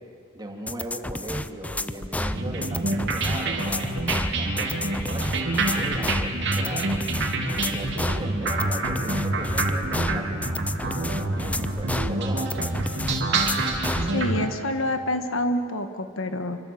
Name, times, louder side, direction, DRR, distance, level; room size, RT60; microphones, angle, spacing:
voice 1, 0.3-3.9 4.3-6.9 7.3-12.9, right 1 dB, 20° right, 2 dB, 2.7 m, -38 dB
sound 1, 0.7-14.1, left 1 dB, 5° left, 0.5 m, -31 dB
sound 2, 2.3-14.5, right 2 dB, 60° right, 3.1 m, -27 dB
voice 2, 14.1-16.6, left 1 dB, 70° left, 8 dB, 1.5 m, -27 dB
27.0 x 24.5 x 7.7 m, 2.3 s
head